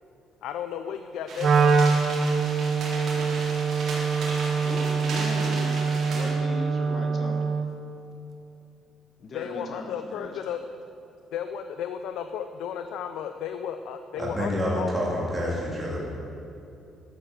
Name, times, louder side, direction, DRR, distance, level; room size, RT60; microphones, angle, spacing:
voice 1, 0.4-2.0 9.3-10.6 11.3-15.0, left 8 dB, 75° left, 8 dB, 0.7 m, -34 dB
sound 1, 1.3-6.3, right 2 dB, 55° right, 4.3 m, -36 dB
Wind instrument woodwind instrument, 1.4-7.8, right 5 dB, 40° right, 1.1 m, -24 dB
voice 2, 4.5-5.8 6.1-7.5 9.2-10.6, left 2 dB, 35° left, 4 dB, 1.5 m, -37 dB
voice 3, 14.2-16.0, equal, 15° right, -5 dB, 3.4 m, -28 dB
12.5 x 12.0 x 7.7 m, 2.7 s
cardioid pair, 160°, 0 cm